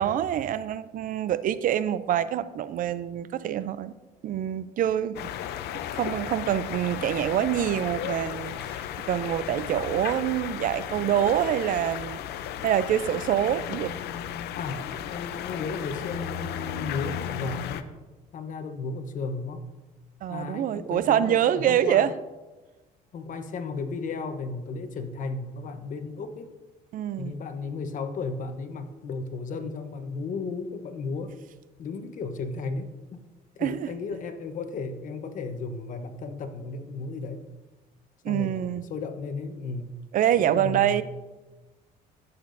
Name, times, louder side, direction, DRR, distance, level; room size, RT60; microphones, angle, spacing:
voice 1, 0.0-4.0 4.2-5.3 5.9-12.2 12.6-13.9 20.2-22.1 26.9-27.4 33.6-33.9 38.2-38.8 40.1-41.0, right 10 dB, 55° right, 15 dB, 0.4 m, -26 dB
sound 1, 5.1-17.8, left 10 dB, 75° left, 0.6 m, -34 dB
voice 2, 14.5-17.9 18.3-19.6 20.3-22.1 23.1-26.5 27.2-31.4 31.8-33.2 33.5-37.4 38.2-40.0 40.4-41.0, left 4 dB, 50° left, 8 dB, 0.9 m, -34 dB
14.5 x 6.8 x 2.6 m, 1.2 s
cardioid pair, 110°, 17 cm